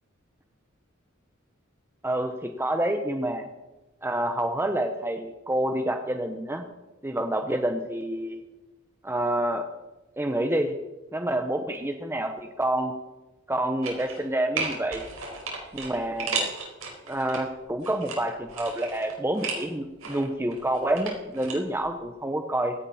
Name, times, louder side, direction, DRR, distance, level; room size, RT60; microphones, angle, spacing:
voice 1, 2.0-3.5 4.0-6.6 7.0-8.4 9.0-9.6 10.2-10.8 11.1-12.9 13.5-15.0 15.7-16.5 17.1-22.7, right 1 dB, 10° right, 5 dB, 0.9 m, -28 dB
sound 1, 13.8-14.3 14.6-17.4 17.8-19.7 20.0-21.6 21.8-21.9, right 4 dB, 70° right, 5.0 m, -34 dB
17.0 x 16.0 x 4.3 m, 1.1 s
head